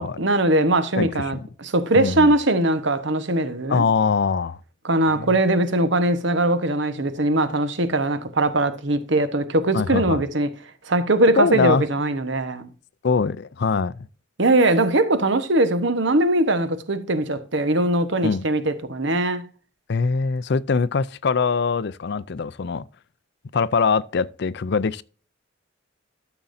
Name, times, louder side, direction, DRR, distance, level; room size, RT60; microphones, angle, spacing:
voice 1, 0.0-3.8 4.8-10.5 10.9-12.7 14.4-19.4, right 2 dB, 60° right, 1.2 m, -21 dB
voice 2, 1.0-1.5 1.9-2.3 3.7-4.6 5.1-5.3 9.7-10.2 11.4-11.8 13.0-13.9 18.2-18.4 19.9-22.8 23.5-25.0, left 5 dB, 55° left, 0.5 m, -22 dB
13.0 x 6.9 x 2.7 m
head